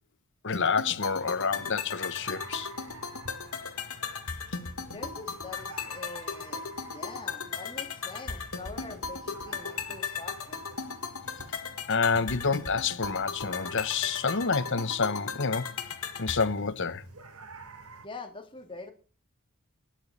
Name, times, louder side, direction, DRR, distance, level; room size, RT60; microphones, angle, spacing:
voice 1, 0.4-2.7 11.9-15.7 16.2-17.0, left 5 dB, 55° left, 1.0 m, -28 dB
sound 1, 0.5-16.5, left 5 dB, 75° left, 2.0 m, -37 dB
sound 2, 1.2-18.1, right 3 dB, 85° right, 3.2 m, -50 dB
voice 2, 4.8-10.8 18.0-18.9, left 3 dB, 25° left, 2.1 m, -44 dB
12.0 x 10.5 x 8.2 m
head